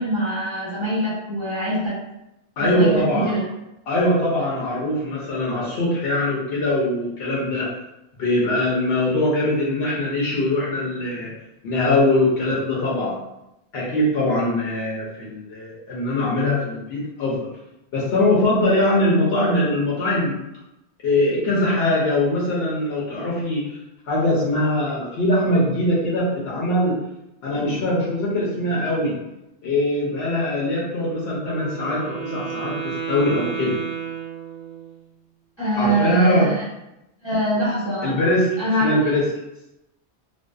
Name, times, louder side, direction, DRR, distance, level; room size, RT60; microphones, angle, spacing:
voice 1, 0.0-1.9 2.6-3.4 35.6-36.6 37.2-38.2 38.6-38.9, right 1 dB, 30° left, -10 dB, 0.8 m, -23 dB
voice 2, 2.6-3.4 3.9-7.7 8.2-11.3 11.6-13.2 13.7-17.4 17.9-20.4 21.0-23.8 24.1-27.0 27.4-29.2 29.6-33.8 35.8-36.5 38.0-38.5 38.8-39.3, left 1 dB, 70° left, -5 dB, 0.9 m, -22 dB
Wind instrument woodwind instrument, 31.4-35.0, right 7 dB, 85° right, 0.9 m, -32 dB
2.5 x 2.2 x 2.2 m, 0.89 s
omnidirectional pair, 1.2 m